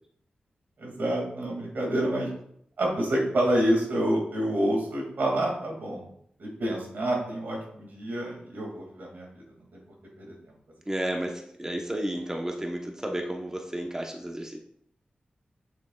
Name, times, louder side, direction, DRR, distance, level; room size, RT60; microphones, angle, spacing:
voice 1, 0.8-2.3 2.8-6.1 6.4-9.4 9.7-9.8 10.2-10.3, right 1 dB, 85° right, -1 dB, 2.3 m, -28 dB
voice 2, 10.9-14.6, right 1 dB, 20° right, 1 dB, 1.0 m, -32 dB
7.6 x 6.9 x 2.4 m, 0.67 s
cardioid pair, 60°, 3 cm